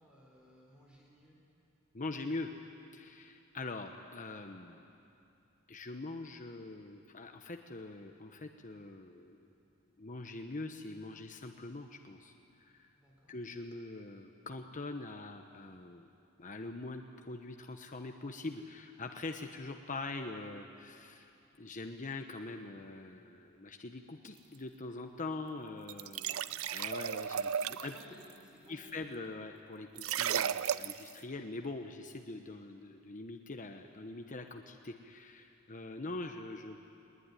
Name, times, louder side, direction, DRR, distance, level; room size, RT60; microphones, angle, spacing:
voice 1, 0.0-1.4 12.9-13.4 26.4-26.6 27.5-28.9, equal, 5° right, -3 dB, 4.2 m, -58 dB
voice 2, 1.9-2.5 2.9-4.8 5.7-9.5 10.0-12.9 13.3-16.1 16.4-21.3 21.6-26.4 26.7-27.5 27.8-27.9 28.7-36.8, left 2 dB, 40° left, 4 dB, 1.1 m, -43 dB
sound 1, 25.9-28.0 30.0-31.1, right 8 dB, 80° right, 0.5 m, -34 dB
21.0 x 20.5 x 9.9 m, 2.7 s
head